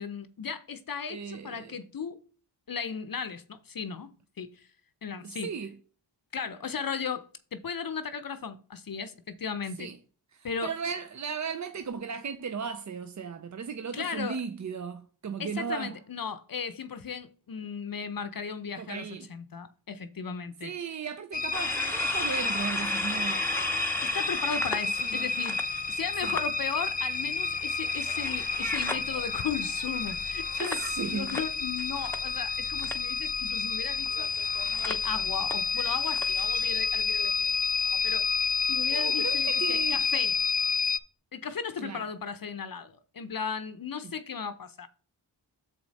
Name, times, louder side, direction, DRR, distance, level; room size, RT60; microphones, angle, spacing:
voice 1, 0.0-2.2 2.7-4.1 4.4-4.7 5.0-5.5 6.3-7.3 7.5-9.9 10.4-10.7 13.9-14.4 15.4-20.7 24.0-25.6 25.9-30.8 31.1-34.3 34.8-37.5 37.8-38.3 38.7-40.3 41.3-44.9, left 6 dB, 50° left, 0.7 m, -36 dB
voice 2, 1.1-1.8 5.2-5.7 9.8-9.9 10.3-15.9 18.8-19.3 20.6-23.6 25.0-25.2 26.2-26.4 30.6-31.4 38.9-40.0 41.8-42.0, right 6 dB, 40° right, 0.5 m, -36 dB
sound 1, 21.3-41.0, left 4 dB, 20° left, 0.3 m, -30 dB
sound 2, 21.5-26.4 26.8-32.5 32.8-33.1 34.0-36.7, left 1 dB, 5° left, 0.7 m, -37 dB
7.0 x 4.8 x 4.1 m
cardioid pair, 65°, 45 cm